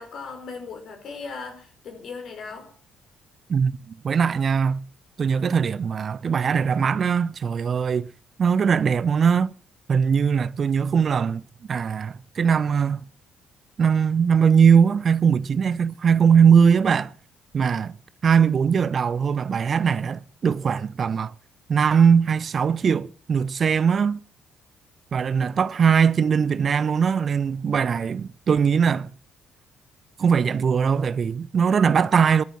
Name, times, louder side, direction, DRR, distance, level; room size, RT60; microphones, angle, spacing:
voice 1, 0.0-2.7, left 4 dB, 50° left, 5.1 m, -37 dB
voice 2, 4.0-4.8 5.2-8.1 8.4-9.5 9.9-11.4 11.7-13.0 13.8-17.1 17.5-17.9 18.2-21.3 21.7-24.2 25.1-29.1 30.2-32.4, right 6 dB, 40° right, 0.7 m, -20 dB
22.5 x 9.1 x 6.0 m
figure-of-eight pair, 45°, 0 cm